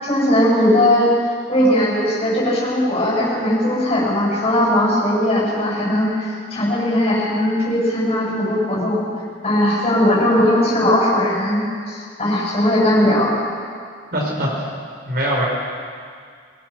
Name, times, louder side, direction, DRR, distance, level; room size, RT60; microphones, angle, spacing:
voice 1, 0.0-1.1 1.5-9.1 9.4-13.4, left 1 dB, 30° left, -4 dB, 7.0 m, -18 dB
voice 2, 14.1-14.5 15.1-15.5, equal, 55° right, -2 dB, 5.2 m, -21 dB
22.0 x 19.0 x 6.2 m, 2.1 s
head